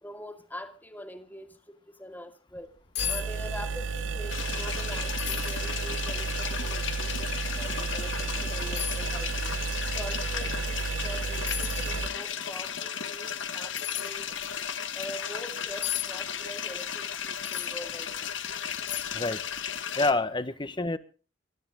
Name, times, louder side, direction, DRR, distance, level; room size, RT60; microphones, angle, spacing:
voice 1, 0.0-2.7 3.1-7.3 7.6-9.5 9.9-14.3 14.9-18.4, left 1 dB, 10° left, 6 dB, 2.3 m, -43 dB
sound 1, 2.6-2.7 2.9-3.2 3.5-4.1 4.4-4.5 5.2-5.6 6.2-6.3 7.8-8.0 8.8-9.0 10.9-11.1 11.5-12.0 13.8-14.1 15.8-16.1 17.4-17.7 18.3-18.4 18.9-19.3 19.6-19.7, left 12 dB, 60° left, 3.7 m, -34 dB
sound 2, 3.0-12.1, right 4 dB, 85° right, 1.0 m, -32 dB
sound 3, 4.3-20.1, left 8 dB, 75° left, 1.7 m, -35 dB
voice 2, 20.0-21.0, left 2 dB, 25° left, 12 dB, 1.2 m, -27 dB
25.0 x 13.0 x 3.7 m, 0.37 s
head